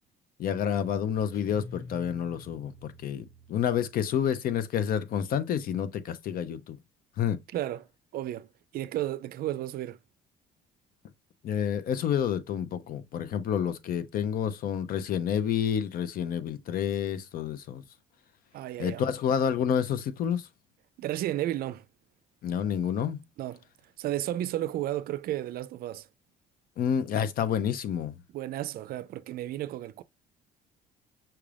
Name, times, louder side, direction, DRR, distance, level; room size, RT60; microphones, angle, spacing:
voice 1, 0.4-6.8 7.2-7.4 11.4-17.8 18.8-20.5 22.4-23.2 26.8-28.2, left 8 dB, 60° left, 0.7 m, -29 dB
Guitar, 1.3-4.5, left 3 dB, 20° left, 1.2 m, -48 dB
voice 2, 7.5-10.0 18.5-19.0 21.0-21.8 23.4-23.6 24.0-26.1 28.3-30.0, right 13 dB, 65° right, 0.4 m, -33 dB
5.8 x 2.4 x 3.3 m
cardioid pair, 110°, 17 cm